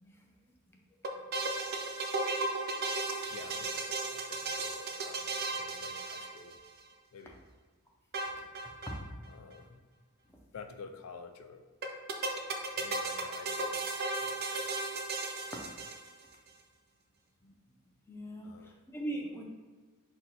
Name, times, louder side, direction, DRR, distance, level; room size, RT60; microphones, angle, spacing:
sound 1, 1.0-6.8 8.1-9.0 9.2-9.3 9.5-9.6 11.8-16.3, right 3 dB, 45° right, 0.4 m, -35 dB
voice 1, 3.3-6.6 7.1-7.4 9.3-9.8 10.5-11.6 12.8-13.8 14.2-14.4 18.4-18.8, left 5 dB, 65° left, 7 dB, 0.3 m, -50 dB
voice 2, 18.1-19.4, right 1 dB, 10° left, 0 dB, 0.5 m, -41 dB
4.3 x 2.2 x 3.9 m, 1.4 s
head